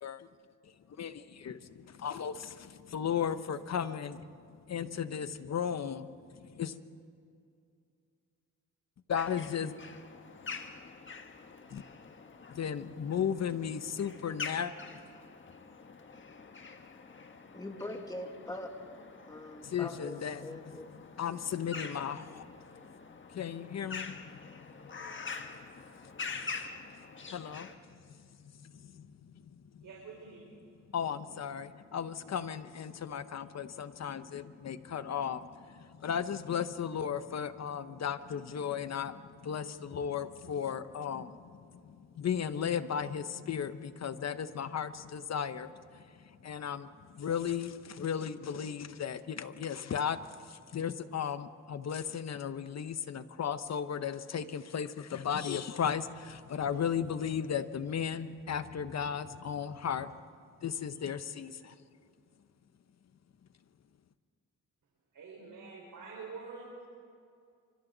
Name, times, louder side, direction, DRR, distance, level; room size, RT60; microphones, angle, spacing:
voice 1, 0.6-6.8 9.1-9.7 11.7-11.8 12.5-14.7 19.6-20.6 21.2-22.7 23.3-24.2 26.3-26.6 27.3-29.8 30.9-60.1 60.6-61.7, left 8 dB, 55° left, 12 dB, 1.0 m, -36 dB
sound 1, 9.2-27.8, left 4 dB, 40° left, 1.4 m, -46 dB
voice 2, 17.5-18.7 19.3-20.9, left 1 dB, 10° left, 3 dB, 2.2 m, -42 dB
voice 3, 29.8-30.5 65.1-66.8, right 4 dB, 75° right, -4 dB, 4.8 m, -46 dB
28.5 x 25.5 x 4.0 m, 2.4 s
cardioid pair, 110°, 32 cm